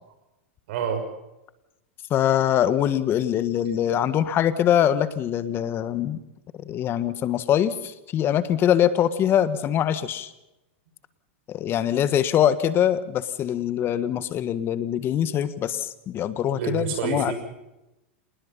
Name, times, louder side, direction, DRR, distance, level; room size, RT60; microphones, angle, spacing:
voice 1, 0.7-1.0 16.5-17.3, right 6 dB, 65° right, 7 dB, 6.2 m, -27 dB
voice 2, 2.1-6.2 6.6-10.3 11.5-17.3, left 10 dB, 35° left, 14 dB, 1.5 m, -23 dB
27.5 x 20.0 x 5.5 m, 0.95 s
hypercardioid pair, 120°, 7 cm